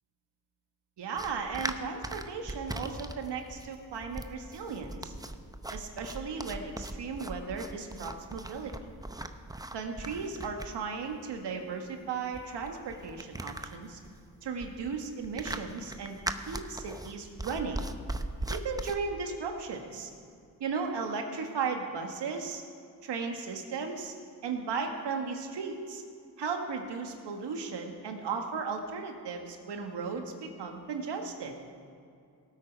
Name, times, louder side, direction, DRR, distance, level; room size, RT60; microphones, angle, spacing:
voice 1, 1.0-5.1 5.7-8.7 9.7-14.0 14.4-16.2 16.5-17.9 18.5-20.1 20.6-22.6 23.0-24.1 24.4-26.0 26.4-31.6, right 5 dB, 75° right, 4 dB, 1.7 m, -36 dB
sound 1, 1.2-19.0, right 2 dB, 10° right, 0.8 m, -40 dB
18.5 x 8.5 x 4.7 m, 2.4 s
cardioid pair, 60°, 41 cm